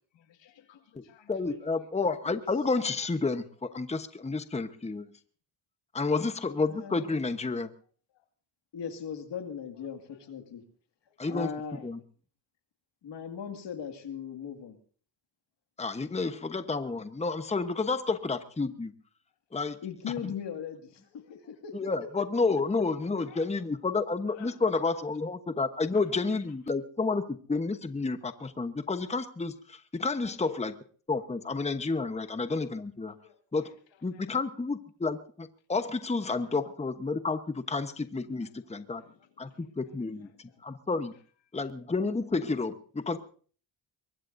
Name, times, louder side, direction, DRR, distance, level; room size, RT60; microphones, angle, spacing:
voice 1, 0.1-1.5 11.1-11.2 23.0-23.7 24.3-24.7 25.1-25.2 25.9-26.0 30.2-30.4 33.0-34.4 36.3-36.5 38.7-39.7 40.2-40.6, left 9 dB, 85° left, 2.1 m, -57 dB
voice 2, 1.3-5.1 5.9-7.7 11.2-11.5 11.8-12.0 15.8-18.9 19.5-19.8 21.7-30.7 31.1-33.1 33.5-33.7 34.0-39.0 39.4-39.5 39.8-40.3 40.6-41.1 41.5-43.2, left 3 dB, 15° left, 1.0 m, -30 dB
voice 3, 6.6-7.2 8.7-10.6 11.3-11.9 13.0-14.8 19.8-21.9, left 7 dB, 70° left, 2.3 m, -39 dB
23.0 x 21.0 x 2.7 m
cardioid pair, 90°, 43 cm